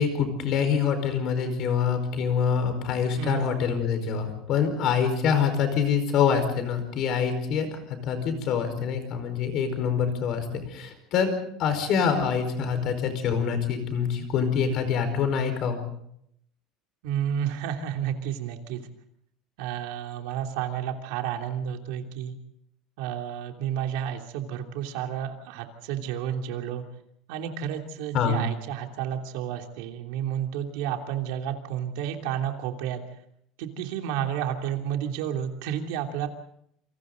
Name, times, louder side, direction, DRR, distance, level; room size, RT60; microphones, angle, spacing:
voice 1, 0.0-11.3 11.6-15.8 28.1-28.5, left 6 dB, 40° left, 8 dB, 4.8 m, -25 dB
voice 2, 3.2-3.6 17.0-18.8 19.6-22.4 23.0-26.8 27.3-33.0 33.6-36.3, right 9 dB, 70° right, 3 dB, 3.1 m, -31 dB
28.5 x 26.5 x 4.0 m, 0.71 s
cardioid pair, 180°, 0 cm